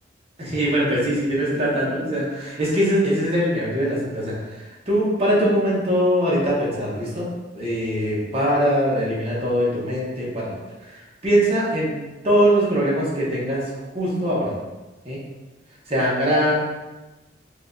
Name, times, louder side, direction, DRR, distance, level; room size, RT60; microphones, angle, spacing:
voice 1, 0.4-7.3 7.5-10.5 10.8-11.9 12.2-14.5 15.0-15.2 15.9-16.5, equal, 30° right, -6 dB, 1.0 m, -22 dB
4.6 x 2.4 x 2.6 m, 1.1 s
head